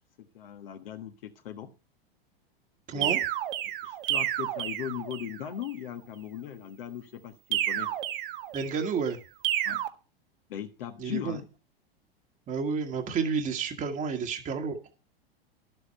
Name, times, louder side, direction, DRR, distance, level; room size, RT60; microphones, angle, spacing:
voice 1, 0.2-1.7 2.9-3.3 3.8-7.9 9.6-9.8 10.5-11.4, left 10 dB, 65° left, 6 dB, 1.4 m, -39 dB
voice 2, 2.9-3.2 8.5-9.2 11.0-11.4 12.5-14.8, right 5 dB, 25° right, 3 dB, 1.5 m, -30 dB
sound 1, 3.0-5.4 7.5-8.9 9.4-9.9, right 12 dB, 60° right, 1.5 m, -30 dB
11.5 x 7.7 x 5.6 m, 0.32 s
hypercardioid pair, 95°, 30 cm